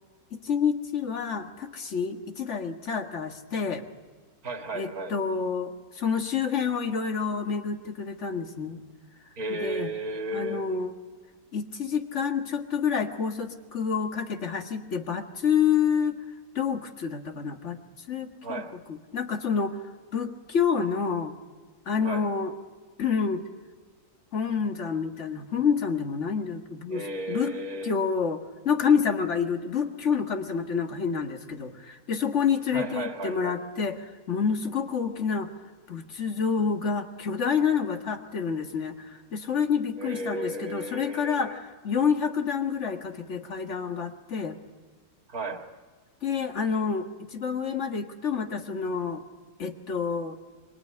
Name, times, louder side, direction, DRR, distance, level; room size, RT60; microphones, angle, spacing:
voice 1, 0.4-3.9 4.7-8.8 9.5-9.9 10.3-10.9 11.5-16.2 16.6-17.8 18.1-18.6 18.9-19.8 20.1-21.4 21.9-22.5 23.0-23.4 24.3-27.6 27.8-28.4 28.7-35.5 35.9-44.6 46.2-49.2 49.6-50.4, left 6 dB, 50° left, 5 dB, 2.0 m, -28 dB
voice 2, 4.4-5.1 9.4-10.7 18.4-18.7 22.0-22.3 26.9-27.9 32.7-33.6 40.0-41.6 45.3-45.6, right 1 dB, 65° right, 4 dB, 2.6 m, -34 dB
25.0 x 23.5 x 9.6 m, 1.5 s
omnidirectional pair, 1.6 m